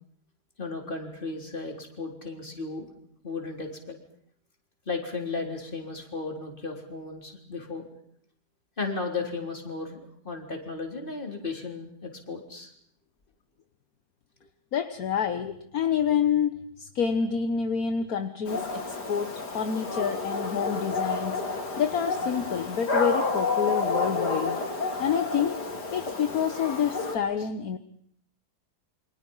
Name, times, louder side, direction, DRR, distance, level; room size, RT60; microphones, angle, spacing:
voice 1, 0.6-2.9 3.2-4.0 4.9-7.8 8.8-12.7, left 3 dB, 30° left, 3 dB, 4.1 m, -35 dB
voice 2, 14.7-24.6 25.0-25.6 25.9-27.8, left 7 dB, 65° left, 10 dB, 1.6 m, -28 dB
Dog, 18.5-27.2, left 3 dB, 85° left, 3.7 m, -30 dB
28.5 x 25.0 x 5.6 m, 0.67 s
omnidirectional pair, 1.7 m